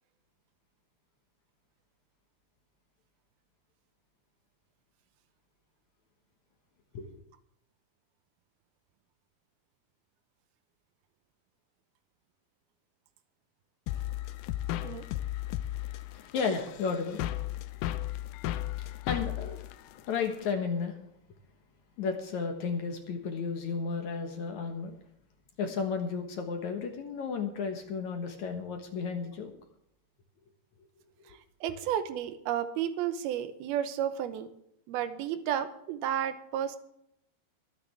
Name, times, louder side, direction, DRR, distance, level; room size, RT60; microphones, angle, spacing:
sound 1, 13.9-20.5, left 14 dB, 85° left, 2.5 m, -35 dB
voice 1, 16.1-17.2 18.8-19.6 20.1-21.0 22.0-25.0 25.6-29.5, left 5 dB, 60° left, 4 dB, 2.3 m, -33 dB
voice 2, 31.3-34.5 34.9-36.8, right 10 dB, 85° right, 11 dB, 2.8 m, -32 dB
22.5 x 9.6 x 3.5 m, 0.77 s
omnidirectional pair, 4.4 m